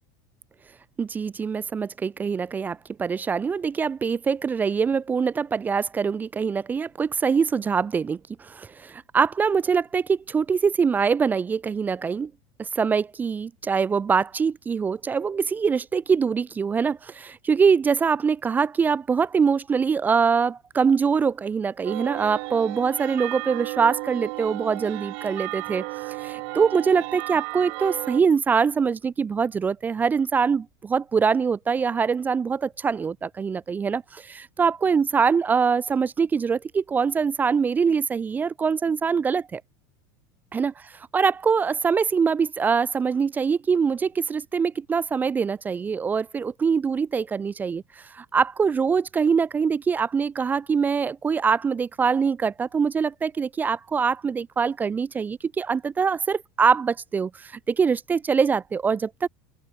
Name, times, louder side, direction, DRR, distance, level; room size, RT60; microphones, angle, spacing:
voice 1, 1.0-12.3 12.6-39.6 40.5-47.8 48.1-59.3, right 6 dB, 15° right, 0.3 m, -24 dB
sound 1, 21.8-28.2, right 36 dB, 55° right, 0.7 m, -34 dB
open air
supercardioid pair, 145°, 12 cm